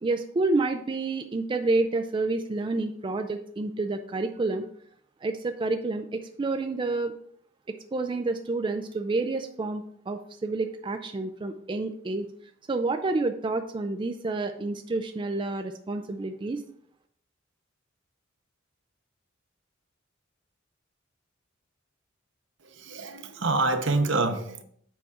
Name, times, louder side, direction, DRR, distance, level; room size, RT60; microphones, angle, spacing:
voice 1, 0.0-4.6 5.2-7.1 7.7-12.3 12.7-16.6, right 3 dB, 25° right, 6 dB, 0.4 m, -29 dB
voice 2, 22.6-24.6, right 3 dB, 65° right, 7 dB, 0.8 m, -27 dB
7.7 x 4.8 x 4.3 m, 0.62 s
head